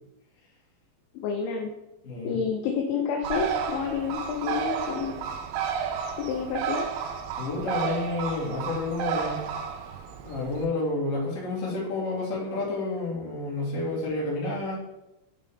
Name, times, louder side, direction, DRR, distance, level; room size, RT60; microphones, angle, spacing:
voice 1, 1.1-1.7 2.2-5.3 6.3-6.9, left 6 dB, 80° left, 1 dB, 2.9 m, -29 dB
voice 2, 2.0-2.4 7.4-9.4 10.2-14.7, left 2 dB, 50° left, -6 dB, 3.3 m, -30 dB
Bird, 3.2-10.7, right 7 dB, 85° right, 3.2 m, -32 dB
9.9 x 3.6 x 3.5 m, 0.91 s
omnidirectional pair, 5.7 m